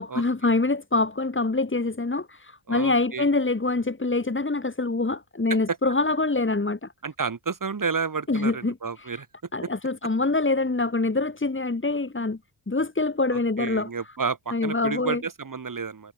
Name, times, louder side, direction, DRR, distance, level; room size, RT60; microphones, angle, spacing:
voice 1, 0.0-6.9 8.3-9.2 9.5-12.4 12.7-13.9 14.5-15.2, left 3 dB, 25° left, 5.5 m, -25 dB
voice 2, 2.7-3.3 5.7-5.8 7.0-9.3 13.3-16.1, right 5 dB, 45° right, 4.7 m, -31 dB
cardioid pair, 65°, 43 cm